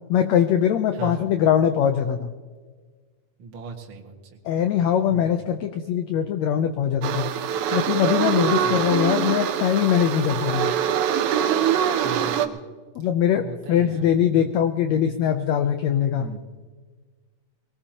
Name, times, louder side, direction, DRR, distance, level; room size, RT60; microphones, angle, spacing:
voice 1, 0.1-2.3 4.4-7.3 7.7-10.7 12.9-16.3, left 9 dB, 90° left, 8 dB, 1.5 m, -22 dB
voice 2, 0.9-1.3 3.4-4.1 5.1-5.4 8.6-8.9 12.0-12.6 13.4-14.5 16.2-16.4, right 4 dB, 45° right, 0 dB, 2.0 m, -37 dB
sound 1, 7.0-12.5, right 9 dB, 75° right, 2.0 m, -24 dB
22.0 x 18.0 x 2.9 m, 1.4 s
omnidirectional pair, 4.0 m